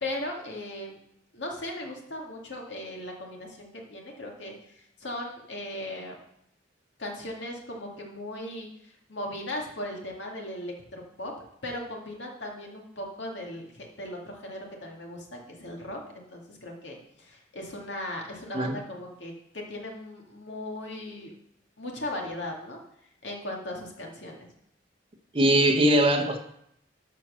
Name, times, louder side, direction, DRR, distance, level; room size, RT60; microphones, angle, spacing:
voice 1, 0.0-1.0 1.3-6.2 7.0-11.3 11.6-21.3 21.8-22.8 23.2-24.5, left 1 dB, 70° left, 0 dB, 2.1 m, -38 dB
voice 2, 25.3-26.4, right 1 dB, 30° right, 3 dB, 1.1 m, -21 dB
12.5 x 4.5 x 6.3 m, 0.73 s
head